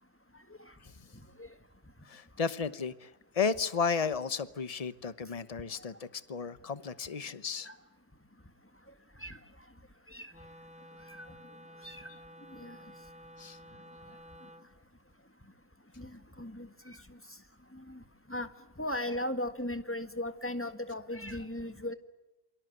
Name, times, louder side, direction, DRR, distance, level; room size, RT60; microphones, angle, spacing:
voice 1, 2.0-7.7 12.1-12.2 13.4-13.6, left 5 dB, 30° left, 14 dB, 1.0 m, -34 dB
Wind instrument woodwind instrument, 10.3-14.7, equal, 5° right, 1.2 m, -52 dB
voice 2, 16.0-17.2 17.7-18.0 18.3-18.5 18.8-21.9, left 1 dB, 10° left, 9 dB, 1.6 m, -37 dB
28.0 x 24.5 x 7.8 m, 1.0 s
omnidirectional pair, 1.4 m